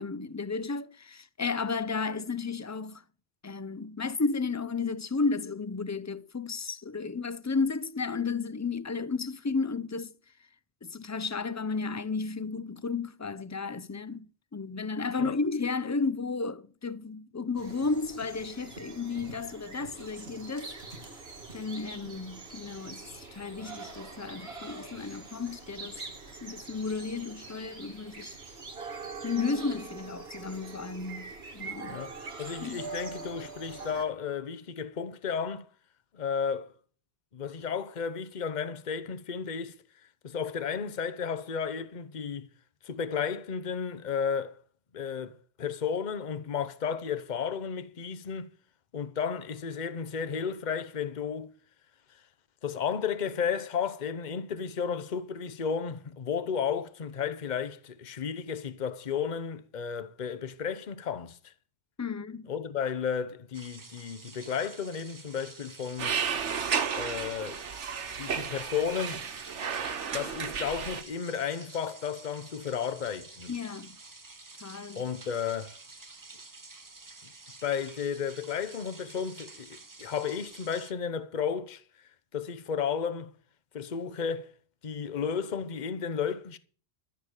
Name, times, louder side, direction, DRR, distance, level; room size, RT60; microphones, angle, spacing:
voice 1, 0.0-3.0 3.4-10.1 10.8-20.7 21.5-26.0 26.4-28.4 29.2-32.0 32.6-32.8 62.0-62.5 73.5-74.0 74.6-75.0, left 4 dB, 25° left, 0.4 m, -33 dB
sound 1, 17.6-34.0, right 4 dB, 60° right, 2.1 m, -44 dB
voice 2, 31.9-35.7 36.1-36.7 37.3-39.8 40.2-42.5 42.8-44.6 44.9-48.5 48.9-51.5 52.6-61.5 62.5-66.2 67.0-67.6 68.2-69.2 70.1-73.5 74.9-75.8 77.6-81.8 82.3-83.3 83.7-84.5 84.8-86.6, left 7 dB, 45° left, 1.0 m, -33 dB
sound 2, 63.5-80.9, right 3 dB, 20° right, 0.7 m, -50 dB
sound 3, 66.0-71.0, right 6 dB, 90° right, 1.4 m, -33 dB
13.5 x 7.3 x 7.3 m
omnidirectional pair, 1.2 m